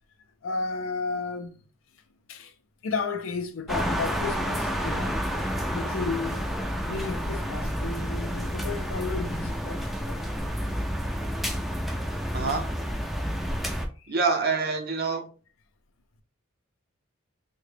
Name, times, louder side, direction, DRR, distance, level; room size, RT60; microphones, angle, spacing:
voice 1, 0.4-1.6 2.3-2.5 2.8-5.2 5.7-6.4 6.9-10.3 14.0-14.2, left 4 dB, 65° left, 0.5 m, -33 dB
sound 1, 3.7-13.9, equal, ahead, 0.4 m, -30 dB
voice 2, 12.3-12.6 14.1-15.3, right 4 dB, 50° right, 0.6 m, -26 dB
3.7 x 2.2 x 3.2 m
head